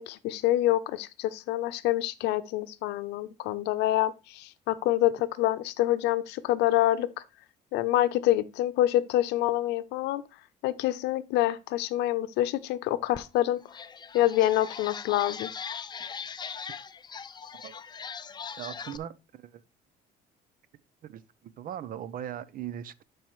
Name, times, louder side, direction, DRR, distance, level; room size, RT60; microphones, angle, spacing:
voice 1, 0.0-7.1 7.7-10.2 10.6-13.8 14.1-15.5, left 14 dB, 90° left, 0.7 m, -26 dB
sound 1, 13.1-13.2 13.6-19.0, left 6 dB, 25° left, 0.5 m, -40 dB
voice 2, 18.6-19.6 21.1-23.0, right 10 dB, 55° right, 0.6 m, -39 dB
12.0 x 4.7 x 3.1 m
cardioid pair, 110°, 17 cm